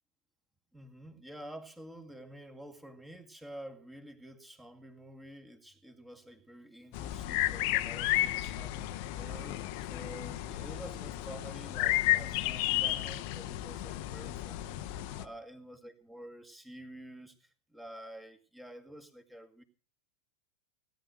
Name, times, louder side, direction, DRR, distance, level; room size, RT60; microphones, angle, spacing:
voice 1, 0.7-19.6, right 1 dB, 5° right, 6 dB, 2.1 m, -49 dB
sound 1, 6.9-15.3, left 15 dB, 45° left, 0.9 m, -33 dB
17.5 x 10.5 x 6.5 m, 0.41 s
figure-of-eight pair, 90°, 0 cm